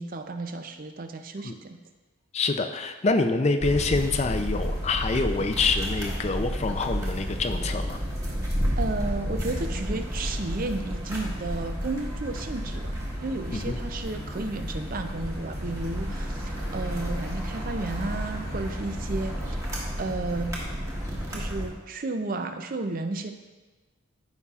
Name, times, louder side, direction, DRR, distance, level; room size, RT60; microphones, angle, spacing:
voice 1, 0.0-1.8 8.8-20.6 21.3-23.3, right 2 dB, 40° right, 8 dB, 0.5 m, -33 dB
voice 2, 2.3-8.0 13.5-13.8 16.1-16.2, left 3 dB, 30° left, 7 dB, 0.4 m, -26 dB
sound 1, 3.6-21.7, equal, 15° right, 1.3 m, -31 dB
14.0 x 5.5 x 2.4 m, 1.3 s
head